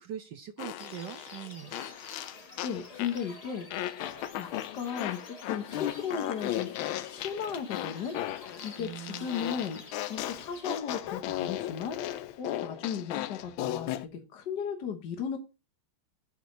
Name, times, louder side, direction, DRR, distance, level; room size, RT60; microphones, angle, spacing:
voice 1, 0.0-1.7 8.8-9.3, right 10 dB, 70° right, 8 dB, 1.1 m, -42 dB
Fart, 0.6-3.3 3.7-14.1, left 13 dB, 75° left, 1.3 m, -36 dB
sound 1, 0.8-10.8, left 3 dB, 30° left, 0.7 m, -49 dB
voice 2, 2.6-3.9 4.4-6.7 7.1-12.0 12.4-15.4, left 7 dB, 60° left, 5 dB, 1.5 m, -36 dB
10.5 x 5.0 x 3.8 m, 0.29 s
omnidirectional pair, 2.4 m